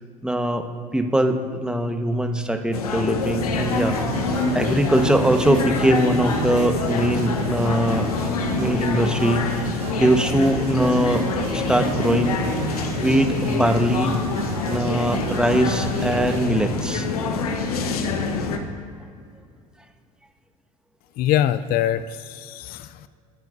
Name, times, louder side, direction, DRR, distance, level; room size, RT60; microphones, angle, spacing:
voice 1, 0.2-0.6 0.9-4.0 4.5-8.1 8.6-9.7 10.0-11.2 11.5-12.5 13.0-14.1 14.7-17.1, right 1 dB, 5° right, 6 dB, 1.3 m, -21 dB
sound 1, 2.7-18.6, left 4 dB, 85° left, 1.2 m, -26 dB
sound 2, 3.5-16.5, right 7 dB, 70° right, 1.0 m, -32 dB
voice 2, 21.2-23.1, left 11 dB, 55° left, 12 dB, 0.5 m, -23 dB
22.5 x 10.5 x 2.7 m, 2.3 s
hypercardioid pair, 65°, 19 cm